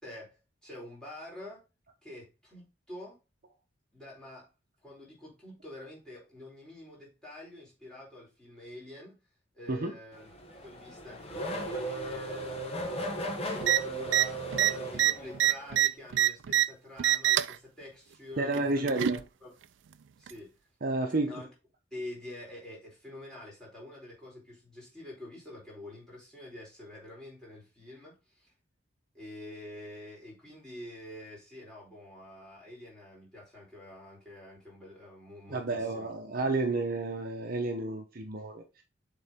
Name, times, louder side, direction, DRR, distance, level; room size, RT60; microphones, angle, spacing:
voice 1, 0.0-1.6 2.0-3.2 3.9-4.5 4.8-9.2 9.5-18.6 18.9-19.0 19.4-19.5 20.2-20.5 21.3-21.5 21.9-28.5 29.1-36.1, left 1 dB, 5° left, 3.9 m, -47 dB
Race car auto racing / Accelerating revving vroom, 10.2-15.7, right 1 dB, 30° left, 1.1 m, -36 dB
sound 1, 13.6-13.8 14.1-14.3 14.5-16.7 17.0-17.6 18.5-19.2 20.3-20.4, right 12 dB, 70° right, 0.4 m, -25 dB
voice 2, 18.4-19.2 20.8-21.4 35.5-38.8, right 2 dB, 50° right, 0.8 m, -31 dB
7.0 x 4.0 x 3.5 m
head